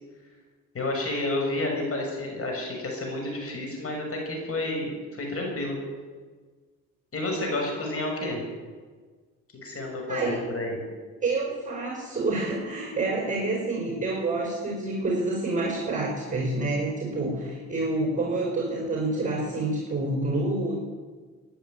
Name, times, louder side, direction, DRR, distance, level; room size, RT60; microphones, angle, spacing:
voice 1, 0.7-5.8 7.1-8.4 9.6-10.8, left 2 dB, 50° left, 0 dB, 6.5 m, -30 dB
voice 2, 10.1-10.4 11.2-20.8, right 2 dB, 25° right, -1 dB, 4.9 m, -28 dB
15.0 x 10.5 x 9.2 m, 1.5 s
cardioid pair, 90°, 30 cm